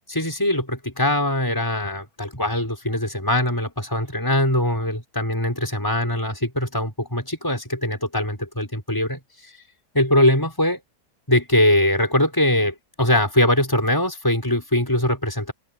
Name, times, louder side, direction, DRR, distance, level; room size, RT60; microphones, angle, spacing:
voice 1, 0.1-9.2 9.9-10.8 11.3-15.5, left 1 dB, 15° left, 6.1 m, -22 dB
open air
omnidirectional pair, 1.6 m